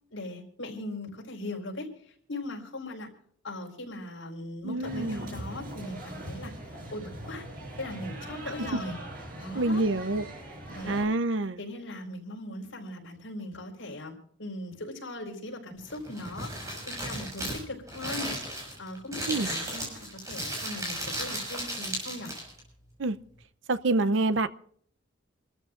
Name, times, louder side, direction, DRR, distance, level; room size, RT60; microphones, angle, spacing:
voice 1, 0.1-3.1 3.4-6.5 6.9-7.4 7.8-9.0 9.4-9.8 10.6-11.1 11.6-16.5 16.9-18.3 18.8-22.3, left 1 dB, 80° left, 4.6 m, -39 dB
voice 2, 4.6-5.2 9.5-10.3 10.9-11.6 19.3-19.5 23.0-23.2 23.7-24.5, right 2 dB, 70° right, 0.7 m, -26 dB
sound 1, 4.8-11.0, right 1 dB, 45° right, 6.9 m, -41 dB
Crumpling crinkling, 15.8-22.6, right 1 dB, 15° right, 6.0 m, -35 dB
28.0 x 13.5 x 2.5 m
head